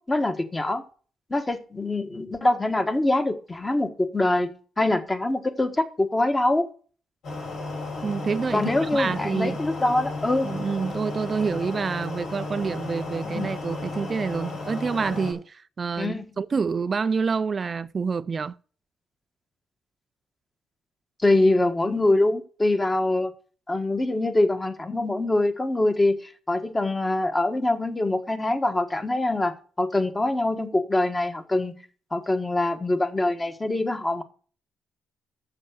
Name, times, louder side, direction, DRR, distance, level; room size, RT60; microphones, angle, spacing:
voice 1, 0.1-0.8 1.3-6.7 8.5-10.5 13.3-13.5 16.0-16.2 21.2-23.3 23.7-31.7 32.1-34.2, left 2 dB, 20° left, 1.4 m, -24 dB
sound 1, 7.2-15.3, left 3 dB, 80° left, 6.7 m, -34 dB
voice 2, 8.0-9.6 10.4-18.6, right 5 dB, 40° right, 0.4 m, -27 dB
7.4 x 6.8 x 8.0 m
cardioid pair, 85°, 0 cm